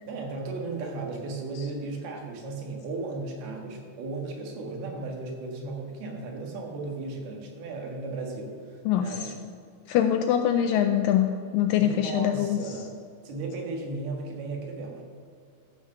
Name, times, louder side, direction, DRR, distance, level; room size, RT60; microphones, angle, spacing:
voice 1, 0.1-9.4 11.8-12.9 13.3-15.1, right 3 dB, 80° right, 1 dB, 3.5 m, -35 dB
voice 2, 8.9-9.3 9.9-12.6, left 10 dB, 85° left, 7 dB, 2.0 m, -24 dB
13.5 x 6.2 x 6.7 m, 2.3 s
omnidirectional pair, 4.4 m